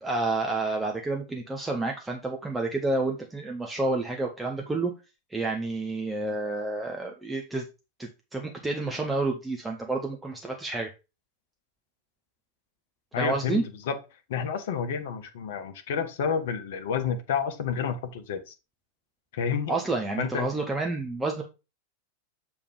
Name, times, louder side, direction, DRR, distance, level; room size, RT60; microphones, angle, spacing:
voice 1, 0.0-4.9 5.3-7.6 8.0-10.9 13.2-13.6 19.7-21.4, right 2 dB, 10° right, 1 dB, 0.9 m, -29 dB
voice 2, 13.1-14.0 14.3-18.5 19.3-19.8 20.2-20.5, left 6 dB, 55° left, 7 dB, 1.0 m, -30 dB
6.8 x 3.6 x 4.7 m, 0.28 s
figure-of-eight pair, 90°, 0 cm